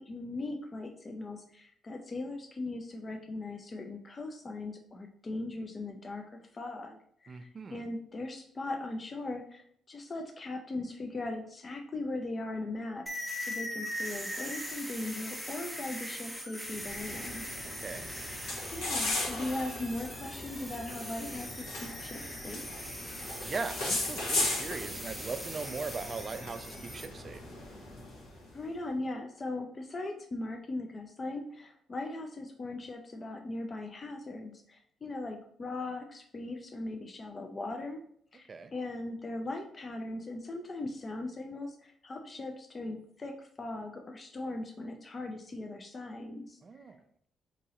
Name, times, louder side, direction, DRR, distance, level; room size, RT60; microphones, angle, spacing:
voice 1, 0.0-13.0 13.4-17.5 18.7-22.9 28.5-38.0 38.3-46.8, left 2 dB, 35° left, 4 dB, 0.4 m, -39 dB
voice 2, 7.3-7.8 17.8-18.1 23.4-27.4 38.5-38.7 46.6-47.0, right 4 dB, 40° right, 9 dB, 0.4 m, -39 dB
sound 1, 13.1-27.1, equal, ahead, 0.7 m, -41 dB
sound 2, 16.7-28.5, left 2 dB, 90° left, 1.2 m, -38 dB
3.6 x 2.9 x 2.9 m, 0.64 s
cardioid pair, 90°, 0 cm